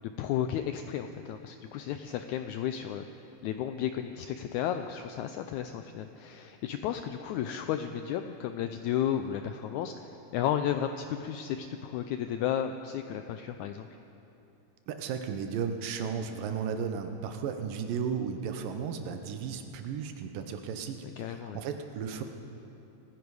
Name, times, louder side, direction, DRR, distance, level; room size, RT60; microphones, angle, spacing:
voice 1, 0.2-13.9 21.2-21.6, left 10 dB, 90° left, 7 dB, 1.7 m, -33 dB
voice 2, 14.9-22.2, right 6 dB, 80° right, 7 dB, 2.6 m, -34 dB
27.5 x 10.0 x 4.8 m, 2.9 s
omnidirectional pair, 3.9 m